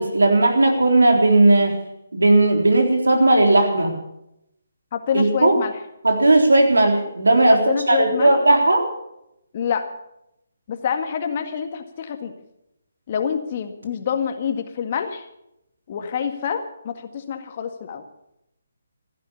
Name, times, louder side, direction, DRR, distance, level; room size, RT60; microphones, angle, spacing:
voice 1, 0.0-1.8 2.1-4.0 5.1-5.6 6.0-8.9, right 2 dB, 90° right, 4 dB, 3.7 m, -16 dB
voice 2, 4.9-5.8 7.7-8.4 9.5-9.9 10.7-12.3 13.1-15.3 15.9-18.0, left 7 dB, 40° left, 7 dB, 1.8 m, -26 dB
15.5 x 11.5 x 7.1 m, 0.82 s
figure-of-eight pair, 150°, 0 cm